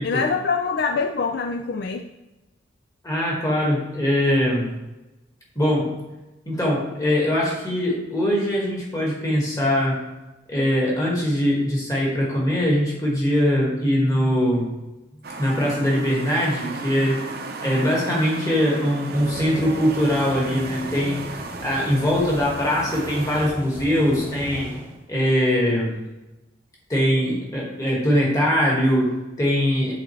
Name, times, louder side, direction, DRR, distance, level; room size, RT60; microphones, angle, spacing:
voice 1, 0.0-2.0, left 5 dB, 55° left, 5 dB, 0.3 m, -24 dB
voice 2, 3.0-4.7 5.6-5.9 6.5-10.0 10.5-14.7 15.4-17.2 17.6-21.2 21.6-24.8 25.1-26.0 26.9-29.9, equal, 20° left, -4 dB, 1.7 m, -22 dB
sound 1, 15.2-23.5, right 3 dB, 50° right, 0.6 m, -36 dB
sound 2, 19.1-25.0, equal, 10° right, 0.8 m, -37 dB
7.7 x 3.9 x 3.2 m, 1.0 s
head